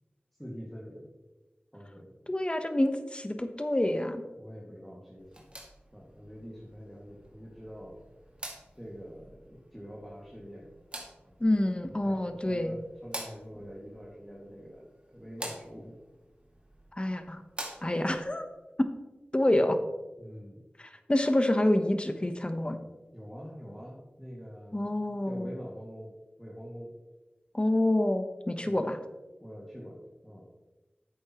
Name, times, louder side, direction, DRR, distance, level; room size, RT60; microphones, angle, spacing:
voice 1, 0.4-1.1 1.7-2.1 4.3-5.5 5.9-8.0 8.7-10.7 12.0-14.8 15.1-16.0 20.2-20.6 23.1-25.0 25.3-26.9 28.6-28.9 29.4-30.0 30.2-30.4, equal, ahead, -4 dB, 2.2 m, -45 dB
voice 2, 2.3-4.2 11.4-12.8 16.9-17.4 17.8-18.5 18.8-18.9 19.3-19.8 20.8-22.8 24.7-25.5 27.5-29.0, left 1 dB, 25° left, 8 dB, 1.0 m, -27 dB
sound 1, 5.2-18.2, right 1 dB, 30° right, 2.2 m, -47 dB
10.5 x 8.3 x 3.1 m, 1.1 s
wide cardioid pair, 40°, 4 cm